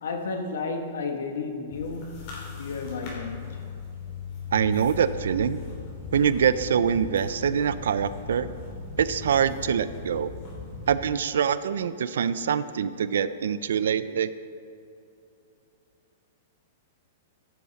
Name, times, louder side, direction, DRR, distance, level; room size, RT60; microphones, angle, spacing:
voice 1, 0.0-2.3 2.6-3.6, left 4 dB, 85° left, 5 dB, 1.3 m, -32 dB
sound 1, 1.7-10.9, left 5 dB, 40° left, 2.9 m, -38 dB
voice 2, 4.5-5.6 6.1-8.5 9.0-10.3 10.9-14.3, right 8 dB, 85° right, 14 dB, 0.4 m, -24 dB
15.5 x 7.2 x 4.1 m, 2.7 s
hypercardioid pair, 160°, 0 cm